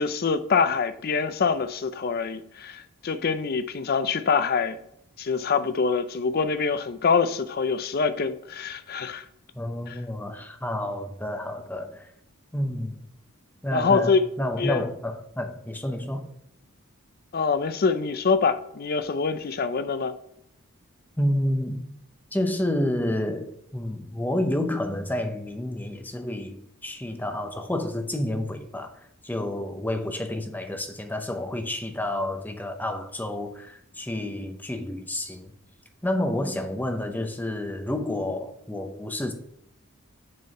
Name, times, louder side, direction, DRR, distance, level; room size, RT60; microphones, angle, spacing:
voice 1, 0.0-4.8 5.2-9.3 9.9-10.0 13.7-14.3 14.6-14.8 17.3-20.1, left 5 dB, 45° left, 0.5 m, -25 dB
voice 2, 9.5-12.1 12.5-13.0 13.6-16.3 21.2-21.8 22.3-35.5 36.0-39.3, left 1 dB, 10° left, 0.7 m, -29 dB
6.3 x 4.6 x 5.3 m
head